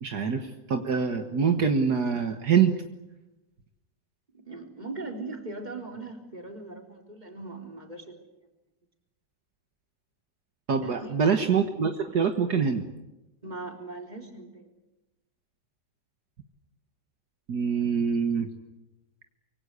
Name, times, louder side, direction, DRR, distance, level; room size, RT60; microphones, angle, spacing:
voice 1, 0.0-2.7 10.7-12.8 17.5-18.5, right 6 dB, 65° right, 6 dB, 2.0 m, -25 dB
voice 2, 4.3-8.1 10.8-11.2 13.4-14.7, right 3 dB, 25° right, 3 dB, 4.0 m, -39 dB
25.5 x 24.0 x 8.3 m, 0.98 s
omnidirectional pair, 1.9 m